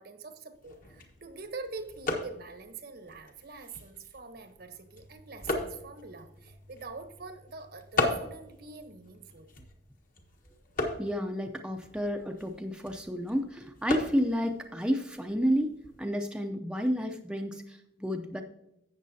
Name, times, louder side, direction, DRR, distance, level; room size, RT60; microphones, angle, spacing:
voice 1, 0.0-9.5, right 4 dB, 60° right, 9 dB, 1.0 m, -44 dB
sound 1, 0.5-16.1, left 2 dB, 50° left, 1.4 m, -38 dB
voice 2, 11.0-15.7 16.0-18.4, equal, 5° right, 3 dB, 0.5 m, -31 dB
13.0 x 8.3 x 2.7 m, 0.83 s
head